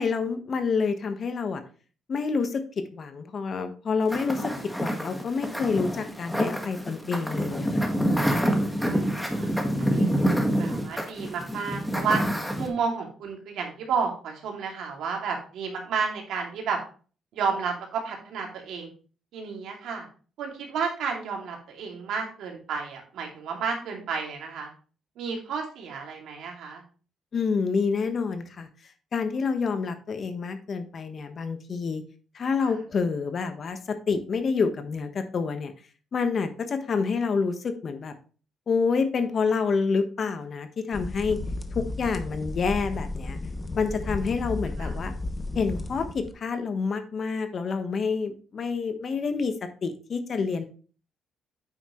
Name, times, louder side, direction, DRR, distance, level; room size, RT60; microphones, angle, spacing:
voice 1, 0.0-1.6 2.1-7.9 27.3-28.7 29.1-32.0 32.3-33.8 34.1-35.7 36.1-38.1 38.7-41.4 41.7-43.4 43.7-45.1 45.5-49.5 49.8-50.6, left 5 dB, 50° left, 8 dB, 1.2 m, -28 dB
sound 1, 4.1-12.7, equal, ahead, 1.7 m, -27 dB
voice 2, 8.8-9.5 9.8-12.2 12.6-16.8 17.3-18.9 19.3-20.1 20.4-24.7 25.2-26.8 32.6-32.8 44.8-44.9, right 5 dB, 80° right, 1 dB, 2.5 m, -31 dB
sound 2, 40.9-46.3, left 2 dB, 25° left, 1.0 m, -34 dB
8.9 x 5.9 x 3.1 m, 0.38 s
cardioid pair, 90°, 0 cm